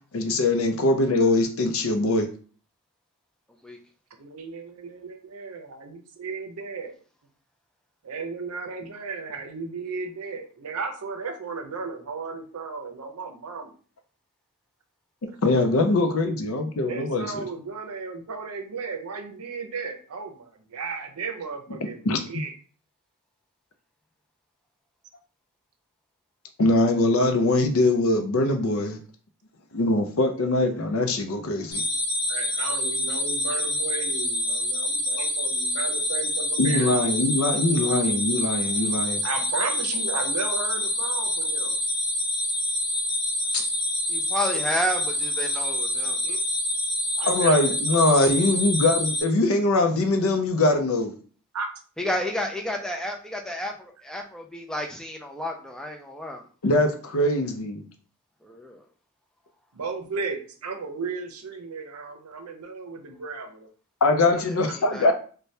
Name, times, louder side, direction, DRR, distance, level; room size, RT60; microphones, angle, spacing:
voice 1, 0.1-2.3 15.2-17.4 22.1-22.2 26.6-29.0 29.7-31.8 36.6-39.2 43.5-43.6 47.3-51.1 56.6-57.8 64.0-65.1, left 2 dB, 65° left, 5 dB, 0.5 m, -22 dB
voice 2, 4.2-7.0 8.0-13.7 16.9-22.5 32.3-36.9 39.2-41.8 46.0-46.4 47.2-47.8 51.5-51.7 59.7-63.7 64.7-64.8, right 4 dB, 80° right, 5 dB, 0.6 m, -35 dB
sound 1, 31.7-49.2, left 1 dB, 40° left, 0.9 m, -27 dB
voice 3, 44.1-46.2 52.0-56.4 58.4-58.8 64.4-64.5 64.9-65.1, equal, 5° left, 2 dB, 0.4 m, -31 dB
2.7 x 2.2 x 3.2 m, 0.40 s
head